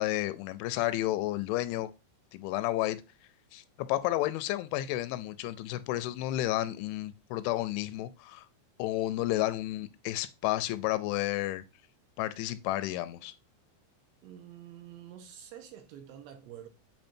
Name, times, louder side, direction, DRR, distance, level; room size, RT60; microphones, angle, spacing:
voice 1, 0.0-1.9 2.3-3.0 3.5-8.5 8.8-11.6 12.2-13.3, left 15 dB, 85° left, 2.9 m, -31 dB
voice 2, 14.2-16.7, right 10 dB, 80° right, 2.8 m, -48 dB
8.8 x 3.1 x 4.3 m
omnidirectional pair, 5.5 m